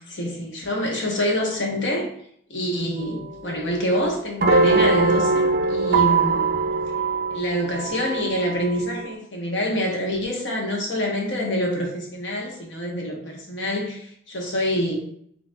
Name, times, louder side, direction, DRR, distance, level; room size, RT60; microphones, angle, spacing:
voice 1, 0.1-2.1 2.5-6.5 7.3-15.0, equal, 70° left, 1.0 m, -26 dB
sound 1, 3.0-9.1, right 3 dB, 50° right, 0.4 m, -22 dB
5.2 x 3.3 x 2.3 m
head